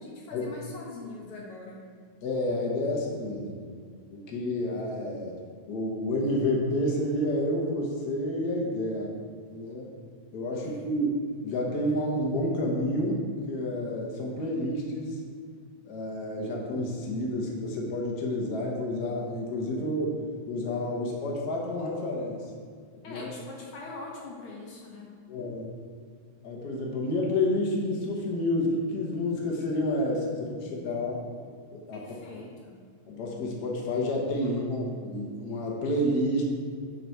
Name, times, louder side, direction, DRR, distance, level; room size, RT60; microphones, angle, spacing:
voice 1, 0.0-1.8 10.5-10.9 23.0-25.1 31.9-32.8, left 3 dB, 70° left, -2 dB, 1.2 m, -43 dB
voice 2, 2.2-3.6 4.1-5.3 5.7-9.1 9.5-9.9 10.3-13.2 13.5-15.2 15.8-20.2 20.5-22.4 23.1-23.3 25.3-25.7 26.4-31.2 31.7-32.0 33.1-36.4, left 1 dB, 85° left, -2 dB, 0.8 m, -29 dB
9.3 x 4.1 x 4.5 m, 2.1 s
omnidirectional pair, 3.5 m